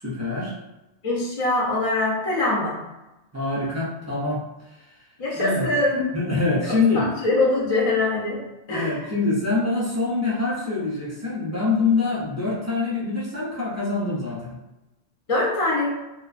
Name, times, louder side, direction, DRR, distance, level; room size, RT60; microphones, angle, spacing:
voice 1, 0.0-0.5 3.3-4.4 5.3-5.7 6.1-7.1 8.7-14.5, left 3 dB, 25° right, -8 dB, 0.3 m, -24 dB
voice 2, 1.0-2.8 5.2-6.1 6.7-8.4 8.7-9.1 15.3-15.9, left 2 dB, 45° left, -5 dB, 0.4 m, -23 dB
2.5 x 2.1 x 2.4 m, 0.99 s
omnidirectional pair, 1.1 m